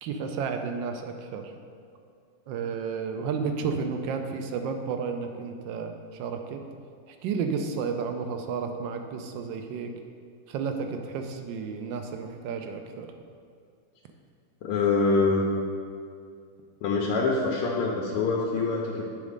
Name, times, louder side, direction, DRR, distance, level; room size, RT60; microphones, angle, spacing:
voice 1, 0.0-1.5 2.5-6.6 7.2-9.9 10.5-13.1, right 5 dB, 75° right, 5 dB, 1.2 m, -32 dB
voice 2, 14.6-15.4 16.8-19.0, left 4 dB, 85° left, -2 dB, 1.7 m, -25 dB
8.4 x 4.1 x 5.1 m, 2.3 s
omnidirectional pair, 2.4 m